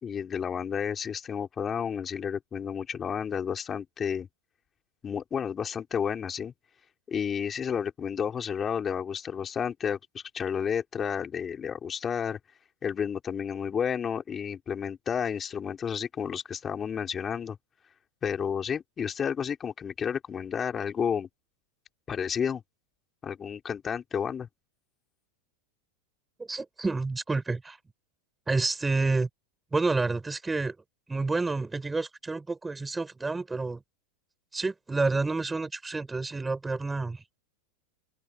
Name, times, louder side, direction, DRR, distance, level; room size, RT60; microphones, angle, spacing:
voice 1, 0.0-4.3 5.0-6.5 7.1-12.4 12.8-17.6 18.2-21.3 22.1-22.6 23.2-24.5, left 7 dB, 25° left, 4.3 m, -31 dB
voice 2, 26.4-27.8 28.5-29.3 29.7-30.7 31.1-33.8 34.5-37.4, right 3 dB, 10° right, 6.8 m, -29 dB
hypercardioid pair, 110°, 0 cm